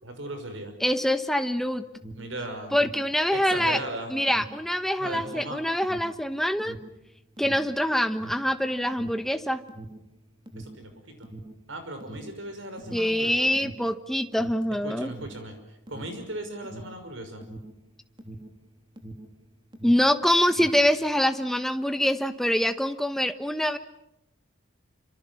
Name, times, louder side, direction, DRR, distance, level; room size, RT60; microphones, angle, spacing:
voice 1, 0.0-0.7 2.1-2.7 3.3-4.1 5.0-5.6 10.6-11.3 11.7-13.5 14.8-15.5 15.9-17.4, right 1 dB, 65° right, 7 dB, 5.8 m, -37 dB
voice 2, 0.8-1.9 2.7-3.8 4.1-6.8 7.4-9.6 12.9-15.1 19.8-23.8, equal, ahead, 9 dB, 1.2 m, -25 dB
Alarm, 1.8-19.4 19.7-21.0, right 1 dB, 20° right, 3.0 m, -44 dB
28.5 x 26.0 x 7.2 m, 0.85 s
head